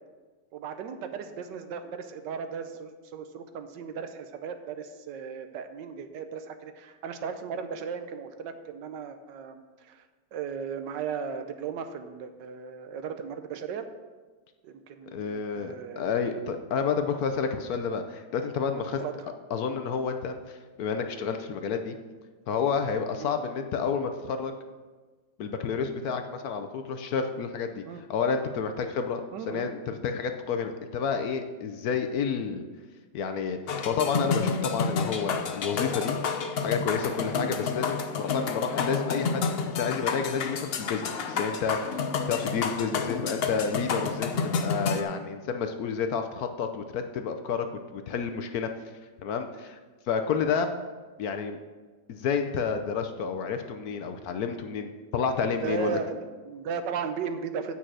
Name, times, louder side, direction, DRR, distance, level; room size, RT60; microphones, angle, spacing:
voice 1, 0.5-10.0 10.3-13.8 14.6-16.1 18.7-19.3 23.2-23.3 27.8-28.0 29.3-29.7 37.4-37.5 55.6-57.8, right 6 dB, 80° right, 8 dB, 1.4 m, -36 dB
voice 2, 15.1-19.0 19.5-22.0 22.5-24.5 25.4-27.8 28.1-29.2 29.5-32.7 33.1-33.6 33.8-36.2 36.6-42.0 42.3-48.7 49.2-49.8 50.1-50.7 51.2-51.6 52.1-56.0, left 6 dB, 65° left, 7 dB, 1.0 m, -30 dB
sound 1, 33.7-45.0, left 5 dB, 85° left, 0.5 m, -30 dB
8.9 x 5.5 x 6.1 m, 1.4 s
omnidirectional pair, 1.9 m